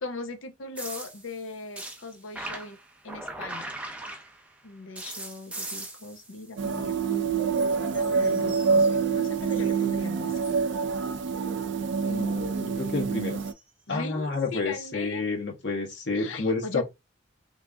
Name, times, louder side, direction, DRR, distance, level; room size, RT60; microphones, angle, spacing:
voice 1, 0.0-2.8 3.0-3.7 4.6-10.4 13.9-15.2 16.1-16.8, left 3 dB, 90° left, 0.8 m, -39 dB
sound 1, 0.8-4.6 5.0-7.2 7.5-9.8 10.3-10.7 13.4-13.6 14.5-14.6, right 2 dB, 5° right, 0.5 m, -41 dB
sound 2, 6.6-13.5, right 5 dB, 65° right, 0.4 m, -26 dB
voice 2, 12.0-13.4 13.9-16.8, left 3 dB, 60° left, 1.3 m, -30 dB
3.3 x 2.6 x 3.4 m
head